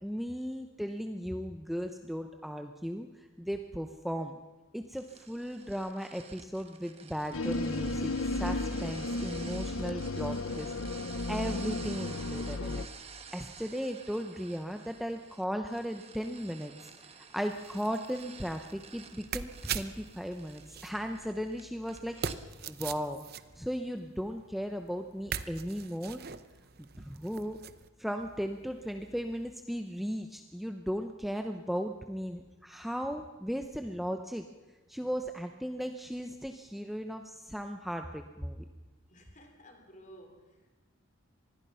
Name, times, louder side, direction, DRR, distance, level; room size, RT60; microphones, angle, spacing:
voice 1, 0.0-4.4 4.7-10.7 11.3-12.8 13.3-16.9 17.3-22.2 22.7-23.2 23.6-26.2 26.8-27.6 28.0-34.4 34.9-38.6, equal, ahead, 5 dB, 0.8 m, -36 dB
sound 1, 4.9-22.4, right 6 dB, 30° right, 1.3 m, -51 dB
sound 2, 7.3-12.9, left 2 dB, 90° left, 0.9 m, -34 dB
sound 3, 17.5-27.9 28.2-29.5, right 7 dB, 50° right, 0.8 m, -43 dB
voice 2, 39.1-40.8, equal, 35° left, 4 dB, 3.7 m, -54 dB
25.5 x 20.5 x 5.7 m, 1.2 s
head